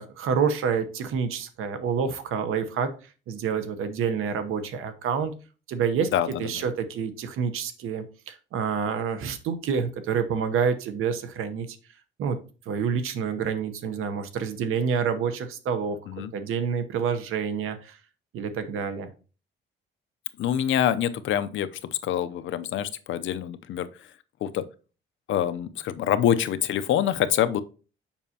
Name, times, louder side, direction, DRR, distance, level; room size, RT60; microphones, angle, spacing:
voice 1, 0.0-2.9 3.3-5.3 5.7-6.1 6.4-11.7 12.2-12.4 12.7-18.0 18.3-19.1, right 6 dB, 85° right, 0.9 m, -28 dB
voice 2, 6.1-6.6 16.1-16.3 20.4-21.7 22.0-23.9 24.4-24.6 25.3-27.6, left 10 dB, 70° left, 0.6 m, -25 dB
7.1 x 5.5 x 2.8 m
cardioid pair, 140°, 21 cm